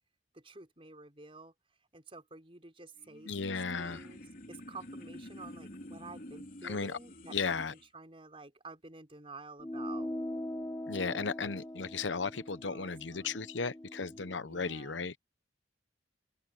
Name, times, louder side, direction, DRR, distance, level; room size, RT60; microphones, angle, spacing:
voice 1, 0.3-1.5 1.9-4.2 4.5-7.6 7.9-10.1 12.6-13.4 14.4-15.1, right 3 dB, 30° right, 5.0 m, -50 dB
sound 1, 3.0-7.9, left 1 dB, 50° left, 3.4 m, -49 dB
voice 2, 3.2-4.1 6.6-7.0 7.3-7.7 10.9-15.2, left 4 dB, 90° left, 1.0 m, -35 dB
sound 2, 9.6-14.4, left 1 dB, 15° left, 1.2 m, -41 dB
head